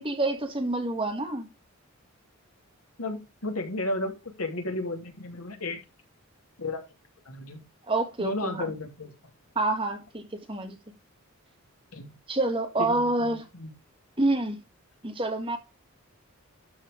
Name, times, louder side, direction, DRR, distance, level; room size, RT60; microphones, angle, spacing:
voice 1, 0.0-1.5 7.9-8.7 9.5-10.8 12.3-13.4 14.2-14.6 15.0-15.6, right 2 dB, 25° right, 1.7 m, -27 dB
voice 2, 3.0-5.8 6.6-6.8 7.3-7.6 8.2-9.1 11.9-12.1 12.8-13.7, left 2 dB, 80° left, 2.8 m, -33 dB
12.5 x 4.7 x 5.1 m
head